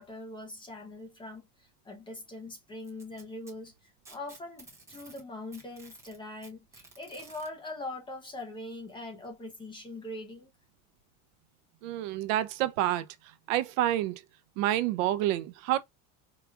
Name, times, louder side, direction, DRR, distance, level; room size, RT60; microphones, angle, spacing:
voice 1, 0.0-1.4 1.8-3.7 4.1-10.5, left 2 dB, 10° left, 0.6 m, -42 dB
Packing tape duct tape, 2.8-5.2 5.5-7.5 8.6-8.7 9.2-9.3 10.2-10.3, right 3 dB, 5° right, 0.9 m, -53 dB
voice 2, 11.8-13.1 13.5-14.2 14.6-15.8, right 13 dB, 65° right, 0.6 m, -28 dB
4.8 x 2.3 x 2.3 m
cardioid pair, 170°, 43 cm